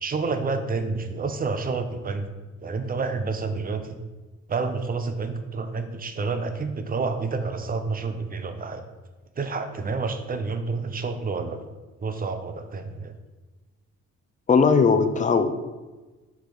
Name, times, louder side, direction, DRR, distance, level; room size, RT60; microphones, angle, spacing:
voice 1, 0.0-2.3 2.6-4.0 4.5-8.8 9.4-11.7 12.0-13.1, right 4 dB, 30° right, 8 dB, 0.6 m, -29 dB
voice 2, 14.5-15.5, left 5 dB, 25° left, 9 dB, 0.5 m, -19 dB
5.8 x 3.5 x 4.7 m, 1.2 s
cardioid pair, 90°, 30 cm